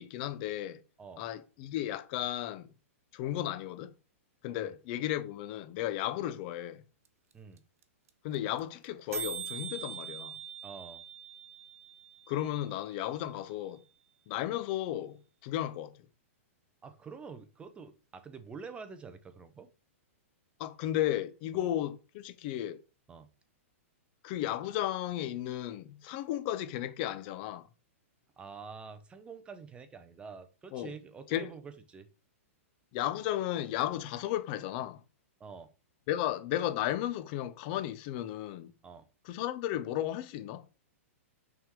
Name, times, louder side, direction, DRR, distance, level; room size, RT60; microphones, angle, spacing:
voice 1, 0.0-0.8 1.2-2.7 3.1-3.9 4.4-6.8 8.2-10.4 12.3-13.8 14.3-15.9 20.6-22.8 24.2-27.7 30.7-30.9 31.3-31.5 32.9-35.0 36.1-38.7 39.3-40.6, left 12 dB, 40° left, 0.7 m, -34 dB
sound 1, 7.1-7.2 7.3-7.4 7.6-7.8 8.1-8.2 8.3-8.6 8.9-9.0 9.1-13.1, right 7 dB, 85° right, 0.8 m, -42 dB
voice 2, 10.6-11.0 16.8-19.7 21.5-21.7 23.1-23.3 28.4-32.1 35.4-35.7 38.8-39.1, right 5 dB, 15° right, 0.7 m, -47 dB
5.8 x 3.7 x 4.7 m
hypercardioid pair, 140°, 8 cm